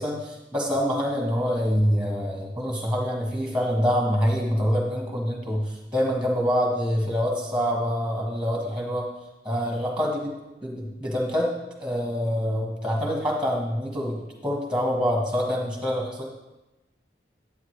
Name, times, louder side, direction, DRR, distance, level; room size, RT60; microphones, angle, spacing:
voice 1, 0.0-9.1 9.4-10.3 10.6-11.5 11.8-16.2, equal, 5° right, -1 dB, 1.4 m, -26 dB
9.7 x 8.5 x 3.3 m, 1.0 s
head